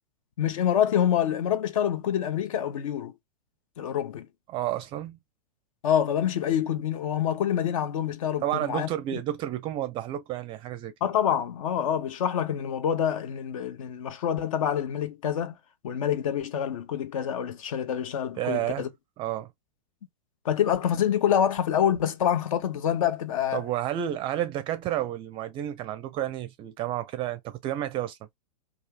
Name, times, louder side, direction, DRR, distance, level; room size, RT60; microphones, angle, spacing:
voice 1, 0.4-3.1 3.8-4.3 5.8-9.2 11.0-15.5 15.8-18.9 20.4-23.6, left 9 dB, 55° left, 0.7 m, -26 dB
voice 2, 4.5-5.2 8.4-10.9 18.4-18.9 19.2-19.5 23.5-28.2, right 12 dB, 25° right, 0.5 m, -31 dB
2.6 x 2.4 x 3.3 m
figure-of-eight pair, 110°, 21 cm